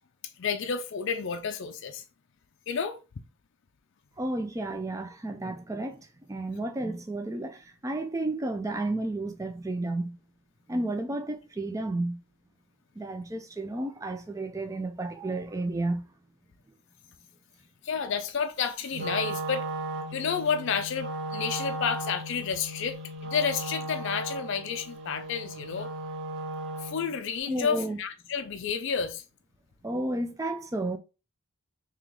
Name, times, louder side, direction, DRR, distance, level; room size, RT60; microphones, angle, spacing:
voice 1, 0.4-2.0 2.7-3.0 17.8-19.7 20.1-23.0 23.2-25.9 26.8-29.2, left 6 dB, 55° left, 0.4 m, -30 dB
voice 2, 4.2-10.2 10.7-12.2 13.0-16.0 27.5-28.0 29.8-31.0, right 2 dB, 15° right, 0.4 m, -32 dB
Wind instrument woodwind instrument, 18.9-27.1, right 1 dB, 55° right, 1.0 m, -36 dB
3.7 x 2.9 x 3.0 m
head